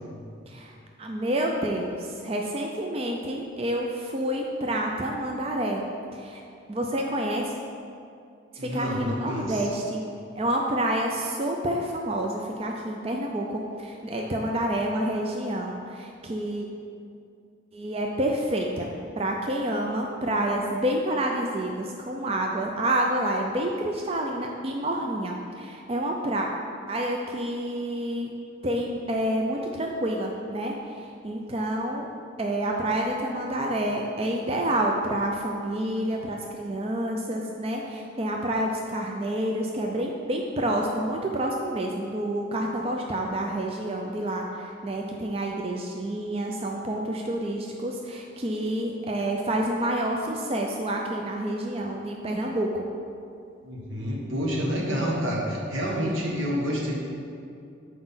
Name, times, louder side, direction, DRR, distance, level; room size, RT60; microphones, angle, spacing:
voice 1, 0.5-5.8 6.1-6.4 6.7-7.5 8.5-10.0 10.3-16.7 17.7-18.9 19.2-26.5 26.9-28.3 28.6-32.1 32.4-52.9, right 1 dB, 30° right, 1 dB, 0.4 m, -28 dB
voice 2, 8.6-9.6 53.6-56.9, equal, 80° right, -2 dB, 1.3 m, -28 dB
5.9 x 4.8 x 5.6 m, 2.5 s
head